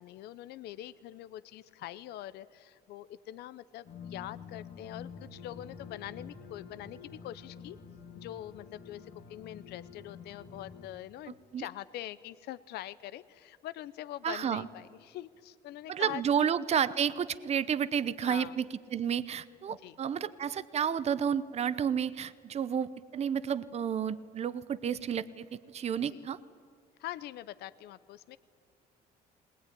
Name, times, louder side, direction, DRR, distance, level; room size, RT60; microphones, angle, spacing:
voice 1, 0.0-7.8 8.2-16.5 18.2-18.6 19.7-20.0 26.0-26.3 27.0-28.4, left 13 dB, 75° left, 16 dB, 0.6 m, -44 dB
sound 1, 3.9-10.9, left 6 dB, 60° left, 2.0 m, -48 dB
voice 2, 14.2-14.7 15.9-26.4, right 8 dB, 40° right, 16 dB, 0.8 m, -31 dB
20.5 x 19.5 x 10.0 m, 2.2 s
cardioid pair, 110°, 17 cm